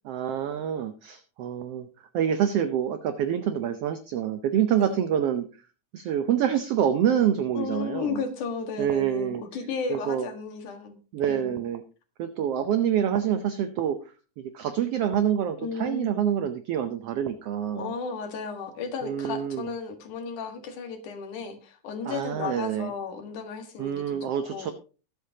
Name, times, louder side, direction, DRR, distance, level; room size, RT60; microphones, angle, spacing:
voice 1, 0.0-1.9 2.1-5.5 5.9-8.2 8.8-9.4 9.9-10.3 11.1-11.8 12.2-14.0 14.4-17.9 19.0-19.7 22.0-22.9 23.8-24.7, right 9 dB, 70° right, 9 dB, 1.6 m, -26 dB
voice 2, 7.6-11.0 11.3-11.6 15.6-16.1 17.8-24.7, left 5 dB, 85° left, 6 dB, 3.2 m, -34 dB
21.5 x 8.1 x 2.8 m, 0.35 s
omnidirectional pair, 3.5 m